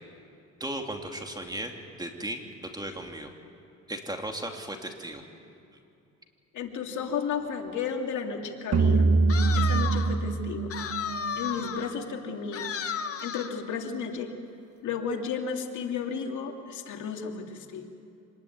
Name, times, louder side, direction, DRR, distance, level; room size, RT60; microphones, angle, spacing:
voice 1, 0.6-1.7 2.0-3.3 3.9-5.2, right 1 dB, 15° right, 3 dB, 3.0 m, -36 dB
voice 2, 6.5-9.1 9.5-10.8 11.4-12.8 13.2-14.3 14.8-17.9, left 6 dB, 75° left, 3 dB, 2.5 m, -33 dB
sound 1, 8.7-12.0, right 3 dB, 55° right, 1.4 m, -24 dB
sound 2, 9.3-10.2 10.7-11.9 12.5-13.6, left 7 dB, 50° left, 1.6 m, -33 dB
26.0 x 20.0 x 9.5 m, 2.6 s
cardioid pair, 90°, 30 cm